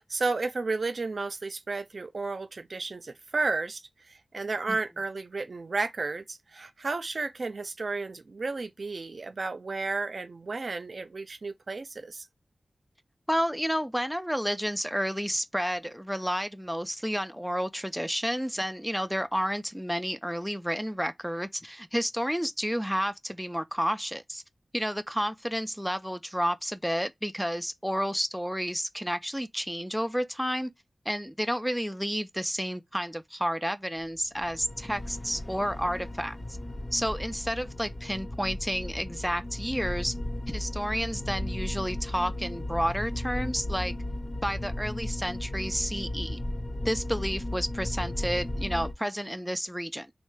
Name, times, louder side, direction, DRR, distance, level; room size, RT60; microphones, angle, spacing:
voice 1, 0.0-3.8 4.1-12.3, right 3 dB, 60° right, 0.5 m, -32 dB
voice 2, 13.3-24.4 24.7-30.7 31.1-36.4 36.9-40.1 40.5-43.9 44.4-46.4 46.8-50.1, equal, ahead, 0.3 m, -31 dB
sound 1, 34.3-48.9, left 1 dB, 35° left, 0.7 m, -35 dB
3.1 x 2.1 x 3.1 m
wide cardioid pair, 85°, 0 cm